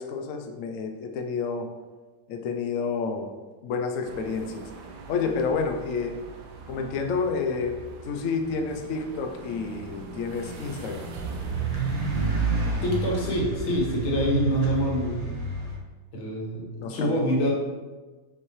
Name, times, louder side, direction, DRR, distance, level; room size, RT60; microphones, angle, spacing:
voice 1, 0.0-1.7 2.3-3.3 3.6-4.7 5.1-6.2 6.7-7.8 8.0-11.1 16.8-17.3, left 5 dB, 70° left, 4 dB, 0.7 m, -29 dB
sound 1, 4.0-13.4, right 2 dB, 65° right, 1.3 m, -42 dB
sound 2, 11.2-15.7, right 4 dB, 25° right, 1.1 m, -29 dB
voice 2, 12.8-15.3 16.1-17.5, equal, 85° left, -3 dB, 2.3 m, -26 dB
6.3 x 6.2 x 3.2 m, 1.3 s
omnidirectional pair, 2.2 m